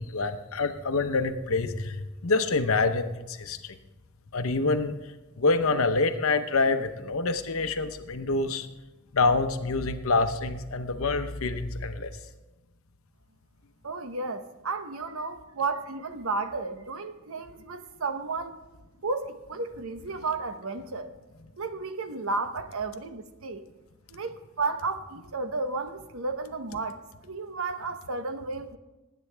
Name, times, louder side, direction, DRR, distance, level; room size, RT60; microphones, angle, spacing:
voice 1, 0.0-3.8 4.3-5.0 5.4-8.7 9.1-12.1, left 3 dB, 70° left, 8 dB, 0.9 m, -26 dB
voice 2, 13.8-18.6 19.0-21.1 21.6-23.6 24.1-28.8, right 3 dB, 70° right, 9 dB, 0.9 m, -33 dB
20.5 x 9.3 x 3.4 m, 1.1 s
head